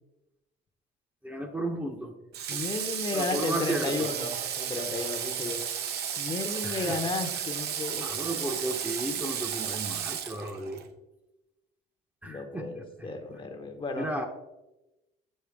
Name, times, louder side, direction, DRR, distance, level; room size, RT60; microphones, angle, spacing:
voice 1, 1.2-2.1 3.1-4.1 6.6-7.0 8.0-10.8 12.2-13.1 14.0-14.3, right 1 dB, 10° right, 3 dB, 0.8 m, -34 dB
Water / Water tap faucet, 2.3-10.9, right 8 dB, 70° right, 0.8 m, -33 dB
voice 2, 2.5-5.6 6.2-8.2 12.2-14.1, left 3 dB, 30° left, 5 dB, 0.9 m, -33 dB
6.5 x 6.5 x 3.5 m, 0.98 s
cardioid pair, 110°, 17 cm